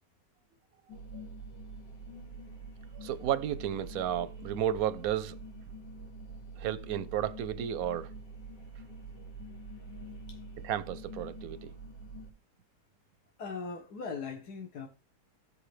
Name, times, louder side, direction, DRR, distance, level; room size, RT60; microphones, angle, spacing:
sound 1, 0.9-12.3, right 2 dB, 85° left, 3.0 m, -46 dB
voice 1, 3.0-5.3 6.6-8.1 10.6-11.7, right 10 dB, 70° right, 0.9 m, -32 dB
voice 2, 13.4-14.9, left 5 dB, 65° left, 1.6 m, -39 dB
16.0 x 5.5 x 3.2 m
omnidirectional pair, 1.9 m